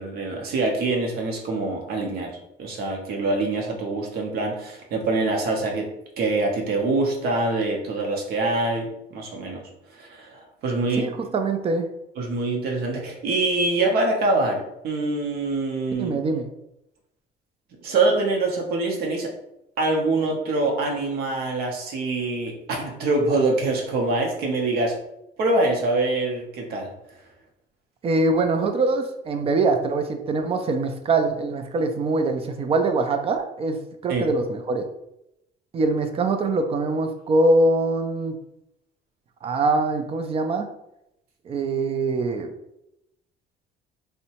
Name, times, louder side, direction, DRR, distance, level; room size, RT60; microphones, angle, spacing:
voice 1, 0.0-2.3 2.6-5.9 6.2-9.6 9.9-11.1 12.2-16.1 17.8-19.3 19.8-24.9 25.4-26.9 34.1-34.2, right 2 dB, 70° right, 1 dB, 0.7 m, -24 dB
voice 2, 11.0-11.9 16.0-16.5 28.0-34.8 35.7-38.4 39.4-40.7 41.5-42.5, right 2 dB, 35° right, 6 dB, 0.4 m, -23 dB
2.7 x 2.1 x 2.8 m, 0.83 s
cardioid pair, 110°, 17 cm